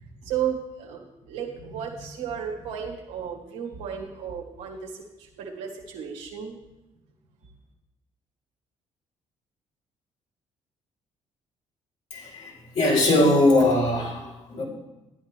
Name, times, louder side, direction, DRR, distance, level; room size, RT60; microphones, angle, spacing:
voice 1, 0.2-6.5, right 8 dB, 90° right, -2 dB, 1.7 m, -34 dB
voice 2, 12.1-14.6, left 1 dB, 65° left, -4 dB, 4.1 m, -21 dB
12.0 x 9.5 x 3.5 m, 0.99 s
supercardioid pair, 60°, 13 cm